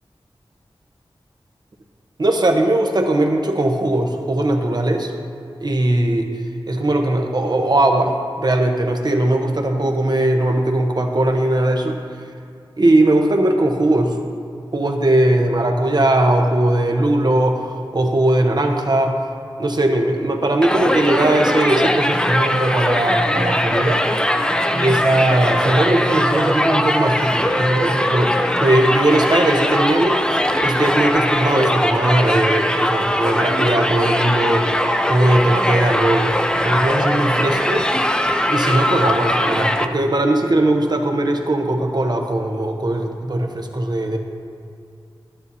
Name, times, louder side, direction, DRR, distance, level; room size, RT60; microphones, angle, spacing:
voice 1, 2.2-5.1 5.6-6.3 6.7-12.0 12.8-14.2 14.7-19.1 19.6-24.0 24.7-30.2 30.6-34.7 35.1-36.3 36.6-37.9 38.5-44.2, right 1 dB, 50° right, 3 dB, 0.9 m, -19 dB
Crowd, 20.6-39.9, equal, 10° left, 0.4 m, -20 dB
12.5 x 9.7 x 2.8 m, 2.4 s
wide cardioid pair, 80°, 9 cm